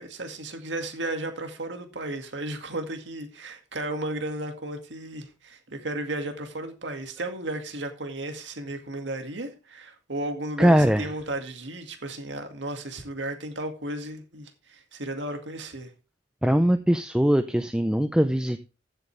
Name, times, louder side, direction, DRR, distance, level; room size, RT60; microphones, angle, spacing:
voice 1, 0.0-15.9, right 1 dB, 70° right, 2.1 m, -34 dB
voice 2, 10.6-11.0 16.4-18.6, equal, 5° right, 0.5 m, -21 dB
15.0 x 7.9 x 3.3 m
head